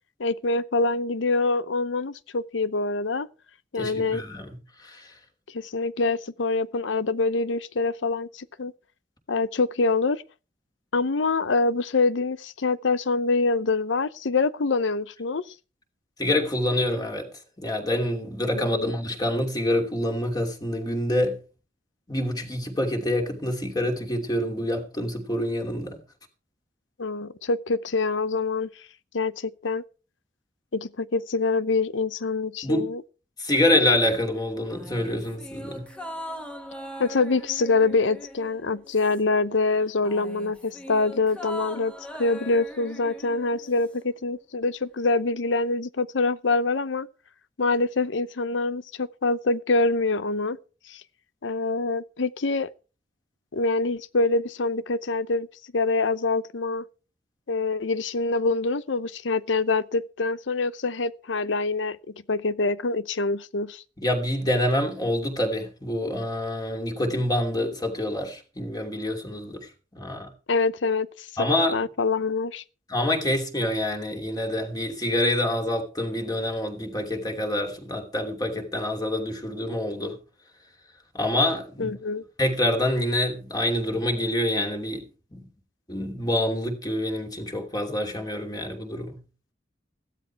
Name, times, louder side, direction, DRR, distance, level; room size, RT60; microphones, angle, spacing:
voice 1, 0.2-3.3 3.7-4.2 5.5-8.7 9.3-10.2 10.9-15.4 18.5-19.0 27.0-28.7 29.1-29.8 30.7-33.0 37.0-41.9 42.2-47.1 47.6-50.6 50.9-51.0 51.4-52.7 53.5-55.5 55.7-56.8 57.5-62.0 62.3-63.8 70.5-71.5 71.7-72.6 81.8-82.2, left 3 dB, 85° left, 0.8 m, -25 dB
voice 2, 3.8-4.5 4.8-5.1 16.2-17.3 17.6-21.4 22.1-26.0 32.6-32.9 33.4-35.9 64.0-70.3 71.4-71.7 72.9-80.2 81.1-82.0 82.4-85.1 85.3-85.5 85.9-89.2, left 1 dB, 20° left, 2.8 m, -26 dB
sound 1, 34.7-39.4 39.7-44.0 44.3-44.4, equal, 5° left, 1.7 m, -40 dB
15.0 x 12.5 x 4.6 m
head